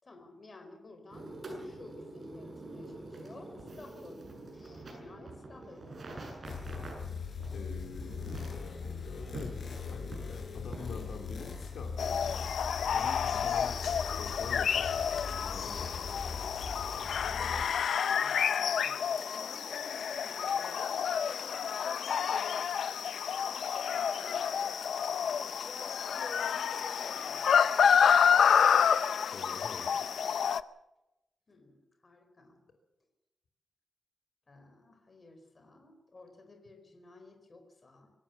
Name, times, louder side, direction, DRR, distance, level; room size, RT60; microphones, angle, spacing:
voice 1, 0.0-6.3 7.5-7.7 17.2-22.7 23.3-24.6 25.6-27.4 28.0-28.3 31.5-32.6 34.5-38.1, left 2 dB, 30° left, 5 dB, 4.6 m, -52 dB
sound 1, 1.1-14.3, right 2 dB, 40° right, 7.4 m, -47 dB
sound 2, 6.4-17.7, left 5 dB, 55° left, 5.5 m, -40 dB
voice 2, 7.5-8.4 9.3-9.5 9.8-12.6 12.9-16.1 29.3-30.1, left 4 dB, 75° left, 3 dB, 3.3 m, -46 dB
sound 3, 12.0-30.6, left 7 dB, 90° left, 0.6 m, -29 dB
24.5 x 16.5 x 7.1 m, 0.92 s
wide cardioid pair, 160°, 0 cm